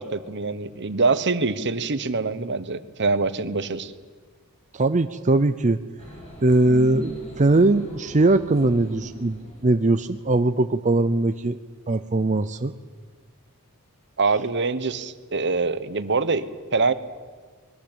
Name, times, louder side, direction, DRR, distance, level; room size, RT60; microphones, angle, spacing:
voice 1, 0.0-3.9 14.2-16.9, right 3 dB, 55° right, 12 dB, 1.2 m, -24 dB
voice 2, 4.7-5.8 6.4-11.6 11.9-12.7, right 2 dB, 35° right, 9 dB, 0.6 m, -20 dB
sound 1, 6.0-10.4, equal, 30° left, 7.4 m, -40 dB
24.0 x 21.0 x 8.8 m, 1.5 s
head